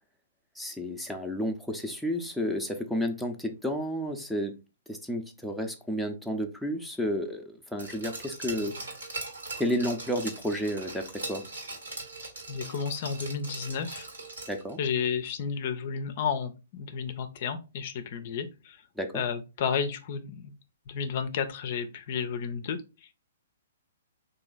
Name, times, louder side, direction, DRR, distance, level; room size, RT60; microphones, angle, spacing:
voice 1, 0.6-4.5 4.9-8.7 9.6-11.4 14.5-14.8 19.0-19.2, equal, ahead, 4 dB, 0.6 m, -31 dB
Glass, 7.8-14.7 15.0-15.1, right 2 dB, 80° right, 1.5 m, -40 dB
voice 2, 12.5-14.1 14.8-18.8 19.1-20.5 20.9-22.8, left 6 dB, 50° left, 9 dB, 0.5 m, -32 dB
2.9 x 2.6 x 3.9 m, 0.29 s
hypercardioid pair, 125°, 0 cm